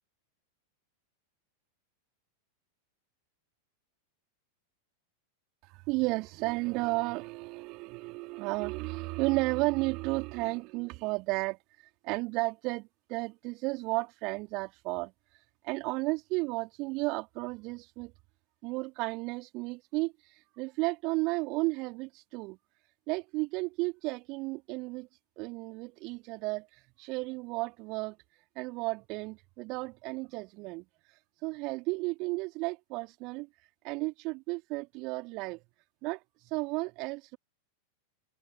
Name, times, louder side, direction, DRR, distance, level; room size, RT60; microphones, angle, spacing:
voice 1, 5.7-11.6 12.0-15.1 15.6-18.1 18.6-22.6 23.1-25.1 25.4-26.7 27.0-28.2 28.5-30.8 31.4-33.5 33.8-35.6 36.0-37.4, right 25 dB, 40° right, 3.0 m, -33 dB
figure-of-eight pair, 90°, 0 cm